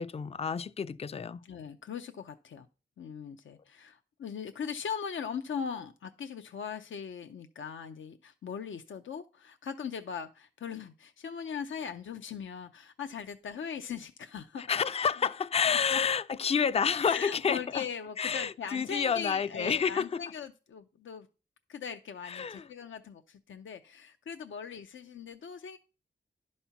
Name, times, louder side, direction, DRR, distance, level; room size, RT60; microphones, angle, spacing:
voice 1, 0.0-1.4 14.6-17.8 18.2-20.2 22.2-22.7, left 6 dB, 30° left, 0.4 m, -29 dB
voice 2, 1.4-2.7 3.0-14.6 15.7-16.0 17.0-21.3 21.7-25.8, left 7 dB, 85° left, 0.6 m, -40 dB
11.0 x 4.3 x 5.7 m
wide cardioid pair, 75°, 20 cm